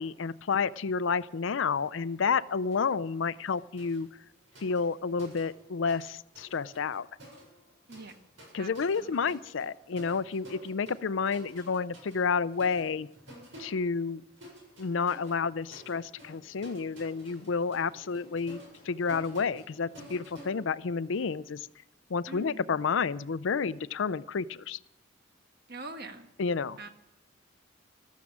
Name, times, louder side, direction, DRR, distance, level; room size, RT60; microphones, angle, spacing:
voice 1, 0.0-4.1 4.6-7.1 8.5-13.1 13.6-14.2 14.8-21.7 22.1-24.8 26.4-26.8, left 5 dB, 75° left, 17 dB, 0.5 m, -30 dB
sound 1, 2.7-3.0 3.2-6.1 6.3-21.3, equal, 75° right, 7.6 m, -52 dB
voice 2, 8.6-9.4 22.3-22.7 25.7-26.3 26.8-26.9, right 2 dB, 55° right, 7 dB, 1.5 m, -44 dB
sound 2, 15.1-20.7, left 1 dB, 35° left, 5.1 m, -60 dB
13.5 x 13.0 x 7.4 m, 0.86 s
head